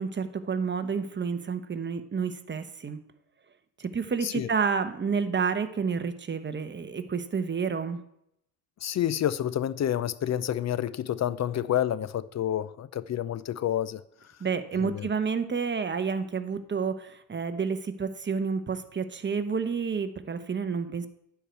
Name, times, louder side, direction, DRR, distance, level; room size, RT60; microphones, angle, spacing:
voice 1, 0.0-3.0 3.8-8.0 14.4-21.1, right 5 dB, 25° right, 1.0 m, -30 dB
voice 2, 8.8-14.0 14.8-15.1, left 11 dB, 35° left, 0.5 m, -29 dB
9.9 x 4.8 x 8.0 m
supercardioid pair, 75°, 47 cm